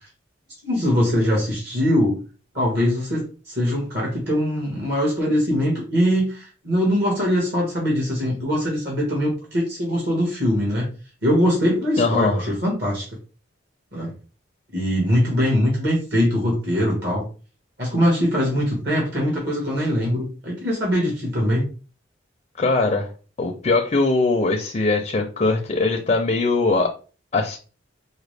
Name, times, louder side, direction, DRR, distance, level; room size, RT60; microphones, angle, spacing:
voice 1, 0.6-2.2 2.5-10.9 11.2-13.0 13.9-14.1 14.7-17.2 17.8-21.7, equal, 60° right, -3 dB, 1.5 m, -22 dB
voice 2, 12.0-12.5 22.6-23.1 23.4-26.9 27.3-27.6, left 3 dB, 35° left, 3 dB, 0.5 m, -21 dB
4.8 x 2.1 x 3.3 m, 0.35 s
head